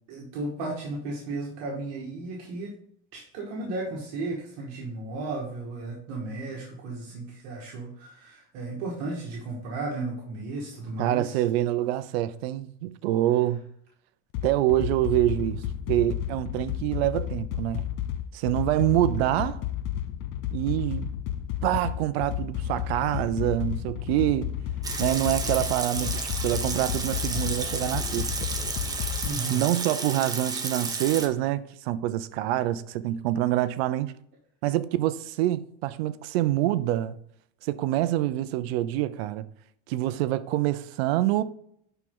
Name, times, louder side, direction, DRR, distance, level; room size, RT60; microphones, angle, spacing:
voice 1, 0.1-2.7 3.1-11.4 29.2-29.6, right 2 dB, 55° right, 2.0 m, -34 dB
voice 2, 11.0-13.6 14.4-15.6 15.9-17.8 18.3-19.6 20.5-21.1 21.6-24.5 25.0-28.3 29.5-34.1 34.6-37.2 37.6-39.5 39.9-41.4, right 14 dB, 70° right, 0.7 m, -26 dB
sound 1, 14.3-29.3, left 11 dB, 40° left, 0.5 m, -32 dB
Water tap faucet / Sink (filling or washing) / Liquid, 24.8-31.3, right 4 dB, 10° right, 0.8 m, -32 dB
11.5 x 4.6 x 3.8 m
supercardioid pair, 150°, 32 cm